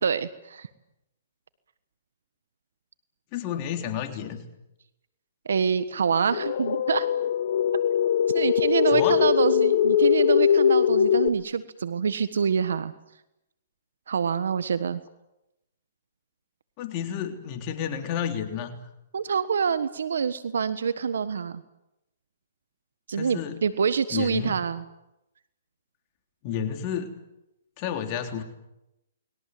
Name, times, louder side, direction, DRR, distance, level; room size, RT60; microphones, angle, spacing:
voice 1, 0.0-0.7 5.4-7.1 8.3-12.9 14.1-15.0 19.1-21.6 23.1-24.8, right 6 dB, 80° right, 13 dB, 1.4 m, -26 dB
voice 2, 3.3-4.4 8.9-9.1 16.8-18.8 23.1-23.6 24.1-24.6 26.4-27.1 27.8-28.4, left 9 dB, 35° left, 4 dB, 3.4 m, -31 dB
sound 1, 6.3-11.3, left 9 dB, 60° left, 1.3 m, -21 dB
29.5 x 22.0 x 7.8 m, 0.91 s
hypercardioid pair, 145°, 0 cm